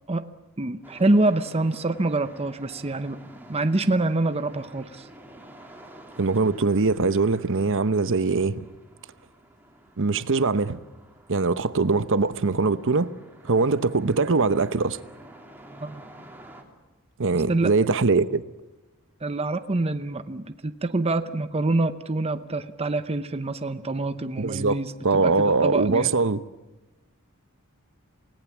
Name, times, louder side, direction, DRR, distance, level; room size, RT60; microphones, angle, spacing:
voice 1, 0.6-3.2 3.5-5.1 15.8-16.0 17.3-17.7 19.2-26.1, right 2 dB, 25° right, 0.8 m, -26 dB
sound 1, 0.8-16.6, right 1 dB, 10° right, 2.9 m, -50 dB
voice 2, 6.2-8.6 10.0-10.8 11.3-13.1 13.4-15.0 17.2-18.4 24.4-24.8 25.0-26.4, right 3 dB, 60° right, 0.9 m, -22 dB
28.5 x 18.5 x 7.3 m
head